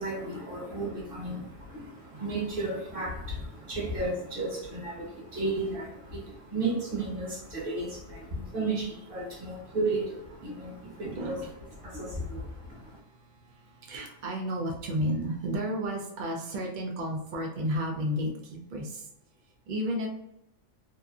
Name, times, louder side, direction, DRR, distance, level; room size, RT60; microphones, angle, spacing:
voice 1, 0.0-11.4 11.8-13.0, right 2 dB, 45° right, -3 dB, 1.1 m, -34 dB
voice 2, 10.4-19.1 19.7-20.1, equal, 85° right, 0 dB, 0.4 m, -34 dB
2.8 x 2.4 x 2.3 m, 0.85 s
omnidirectional pair, 1.4 m